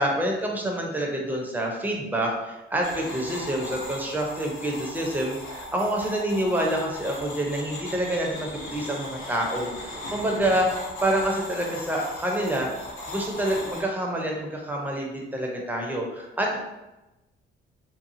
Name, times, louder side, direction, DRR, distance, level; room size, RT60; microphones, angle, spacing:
voice 1, 0.0-16.6, right 1 dB, 10° right, -1 dB, 0.7 m, -27 dB
sound 1, 2.8-13.8, left 1 dB, 85° left, 0.8 m, -38 dB
2.7 x 2.3 x 2.6 m, 0.99 s
cardioid pair, 90°, 20 cm